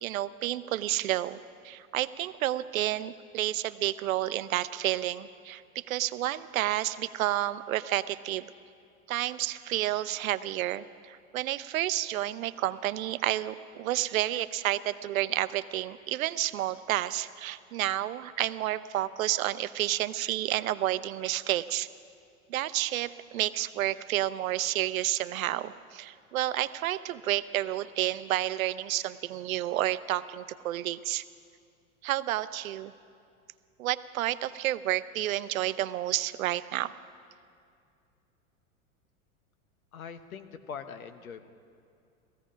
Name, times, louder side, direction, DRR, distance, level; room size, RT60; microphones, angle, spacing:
voice 1, 0.0-1.4 1.6-8.5 9.1-21.9 22.5-31.2 32.0-32.9 33.8-36.9, right 14 dB, 80° right, 15 dB, 0.6 m, -30 dB
voice 2, 39.9-41.5, left 6 dB, 90° left, 10 dB, 1.0 m, -42 dB
16.5 x 15.0 x 5.1 m, 2.4 s
hypercardioid pair, 110°, 41 cm